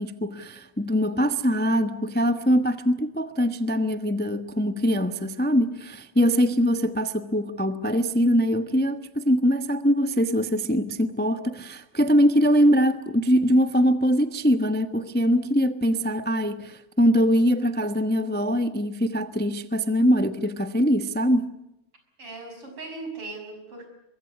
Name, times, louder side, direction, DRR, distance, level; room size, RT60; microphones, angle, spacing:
voice 1, 0.0-21.5, equal, 10° left, 0.4 m, -22 dB
voice 2, 22.2-23.9, right 3 dB, 85° right, 7.2 m, -38 dB
23.5 x 23.0 x 8.2 m
omnidirectional pair, 2.4 m